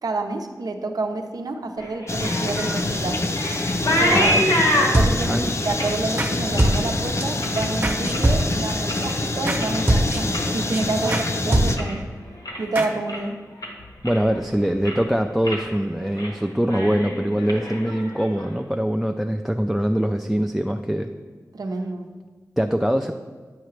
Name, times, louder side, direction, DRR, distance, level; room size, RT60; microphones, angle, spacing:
voice 1, 0.0-3.3 3.9-4.4 4.9-12.1 12.6-13.4 21.5-22.1, right 3 dB, 85° right, 5 dB, 0.6 m, -28 dB
sound 1, 1.8-8.4 8.8-9.3 9.5-12.0 12.3-12.8 13.1-13.2 13.6-14.4 14.7-15.1 15.4-15.7 16.0-16.3 16.6-18.5, left 1 dB, 85° left, 1.3 m, -27 dB
sound 2, 2.1-11.8, left 2 dB, 45° left, 0.6 m, -26 dB
voice 2, 4.1-4.4 5.3-5.5 11.0-11.2 14.0-21.1 22.6-23.1, equal, 5° right, 5 dB, 0.3 m, -23 dB
sound 3, 4.9-5.5 6.2-6.3 6.6-7.2 7.8-8.8 9.5-9.6 9.9-10.4 10.7-10.8 11.1-11.3 11.5-12.1 12.8-12.9, right 1 dB, 30° right, 0.9 m, -22 dB
8.8 x 5.8 x 3.2 m, 1.4 s
wide cardioid pair, 70°, 6 cm